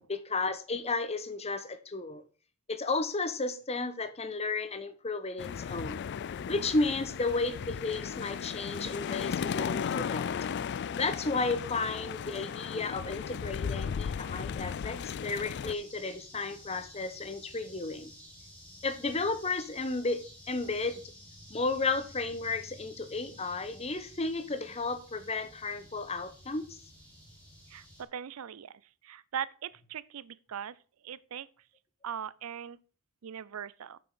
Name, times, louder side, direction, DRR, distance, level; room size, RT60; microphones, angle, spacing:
voice 1, 0.1-2.2 2.7-6.0 6.5-10.3 11.0-18.1 18.8-20.2 20.5-21.0 21.5-26.8, left 3 dB, 30° left, 0.9 m, -33 dB
sound 1, 5.4-15.7, left 7 dB, 50° left, 0.3 m, -35 dB
sound 2, 15.7-28.0, equal, 5° left, 2.8 m, -52 dB
voice 2, 27.7-30.8 31.0-31.5 32.0-32.8 33.2-34.0, right 8 dB, 75° right, 0.5 m, -40 dB
7.8 x 6.1 x 5.5 m
head